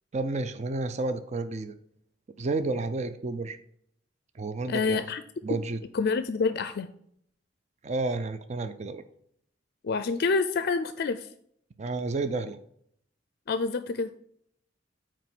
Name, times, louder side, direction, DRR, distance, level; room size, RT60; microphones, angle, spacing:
voice 1, 0.1-1.7 2.4-3.6 4.3-5.1 5.4-5.8 7.8-9.0 11.8-12.6, right 3 dB, 40° right, 10 dB, 0.5 m, -31 dB
voice 2, 4.7-5.2 5.5-5.6 5.9-6.9 9.8-11.3 13.5-14.1, left 4 dB, 55° left, 12 dB, 0.4 m, -27 dB
8.8 x 3.1 x 5.9 m, 0.67 s
head